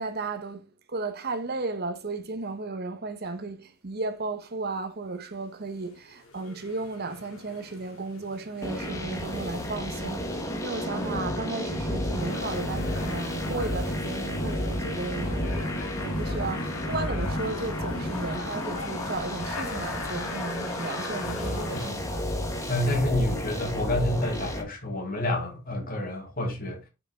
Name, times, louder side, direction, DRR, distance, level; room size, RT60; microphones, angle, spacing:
voice 1, 0.0-10.4 10.6-22.2, right 3 dB, 50° right, 0.9 m, -34 dB
sound 1, 5.8-21.9, left 4 dB, 75° left, 1.5 m, -41 dB
sound 2, 8.6-24.6, left 1 dB, 15° left, 1.1 m, -31 dB
voice 2, 22.7-26.8, left 1 dB, 40° left, 2.1 m, -28 dB
5.7 x 5.3 x 3.5 m
head